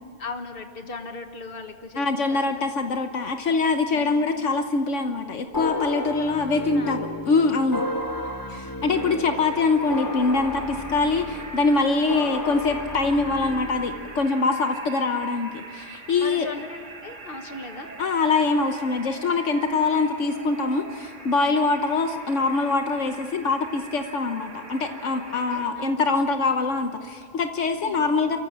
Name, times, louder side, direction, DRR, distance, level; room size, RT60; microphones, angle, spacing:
voice 1, 0.2-2.4 3.9-4.2 6.4-7.0 8.1-8.4 16.2-17.9 25.3-26.0 27.8-28.1, left 3 dB, 50° left, 6 dB, 1.8 m, -38 dB
voice 2, 2.0-7.8 8.5-16.5 18.0-28.4, left 3 dB, 80° left, 6 dB, 1.4 m, -24 dB
sound 1, 5.5-14.3, left 2 dB, 15° left, 1.4 m, -33 dB
sound 2, 8.9-25.7, right 3 dB, 85° right, 2.6 m, -42 dB
28.5 x 14.5 x 8.7 m, 2.3 s
omnidirectional pair, 1.2 m